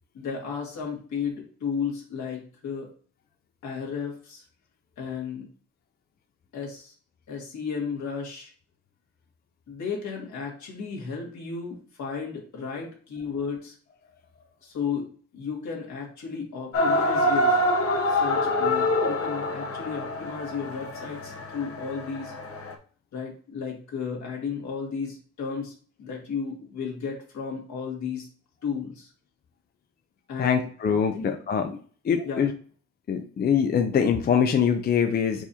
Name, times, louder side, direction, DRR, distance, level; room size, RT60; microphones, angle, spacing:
voice 1, 0.1-2.9 3.6-4.4 5.0-5.5 6.5-6.9 7.3-8.5 9.7-13.7 14.6-17.6 18.1-22.3 23.1-25.7 26.0-28.3 28.6-29.1 30.3-31.3 32.2-32.5, left 6 dB, 70° left, -1 dB, 1.9 m, -34 dB
sound 1, 16.7-22.7, left 1 dB, 50° left, 0.8 m, -26 dB
voice 2, 30.4-31.8 32.0-32.5 33.1-35.4, left 7 dB, 35° left, 6 dB, 0.5 m, -23 dB
4.8 x 4.1 x 2.7 m, 0.44 s
cardioid pair, 90°, 30 cm